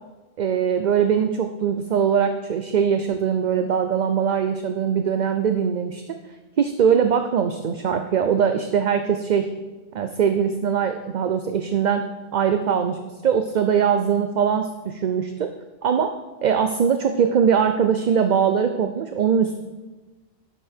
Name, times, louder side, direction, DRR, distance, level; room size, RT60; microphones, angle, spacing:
voice 1, 0.4-6.2 6.6-9.5 9.9-12.1 12.3-15.5 15.8-16.1 16.4-19.6, right 7 dB, 50° right, 7 dB, 0.7 m, -21 dB
17.5 x 6.9 x 4.4 m, 1.2 s
omnidirectional pair, 1.1 m